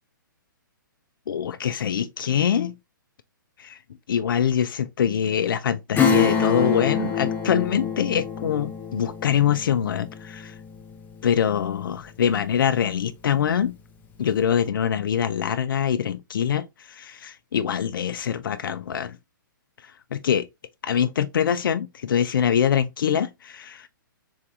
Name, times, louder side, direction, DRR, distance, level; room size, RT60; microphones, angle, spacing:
voice 1, 1.3-2.7 4.1-10.5 11.2-13.7 14.2-19.2 19.8-20.5 20.8-23.9, left 8 dB, 75° left, 0.4 m, -24 dB
Acoustic guitar / Strum, 5.9-12.2 12.5-12.6, left 7 dB, 15° left, 0.6 m, -26 dB
3.5 x 3.3 x 2.5 m
hypercardioid pair, 130°, 11 cm